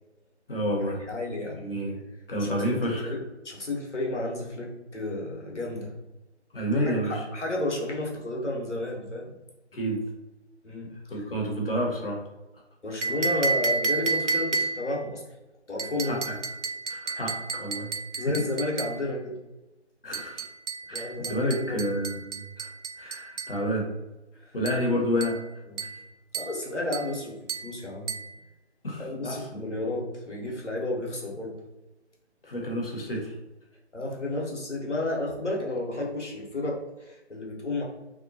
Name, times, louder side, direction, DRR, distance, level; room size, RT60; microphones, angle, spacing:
voice 1, 0.5-1.0 1.6-2.0 2.3-3.2 6.5-7.2 9.7-10.0 11.1-12.2 16.0-16.3 16.9-17.9 18.2-18.3 20.0-20.4 20.9-22.7 23.0-23.9 24.5-25.4 28.8-29.7 32.4-33.3, equal, 55° left, -1 dB, 0.9 m, -29 dB
voice 2, 1.1-1.6 2.4-6.0 6.8-9.3 10.6-10.9 12.8-15.2 15.7-16.2 18.2-19.4 20.9-21.8 24.9-25.1 25.7-25.9 26.3-28.2 29.0-31.6 33.9-37.8, left 2 dB, 85° left, -2 dB, 1.0 m, -32 dB
sound 1, 13.0-15.0 15.8-19.0 20.1-23.6 24.7-24.9 25.2-25.5 25.8-26.1 26.3-26.6 26.9-27.2 27.5-27.7 28.1-28.3, right 4 dB, 85° right, 0.5 m, -31 dB
2.7 x 2.2 x 2.7 m, 1.0 s
figure-of-eight pair, 150°, 35 cm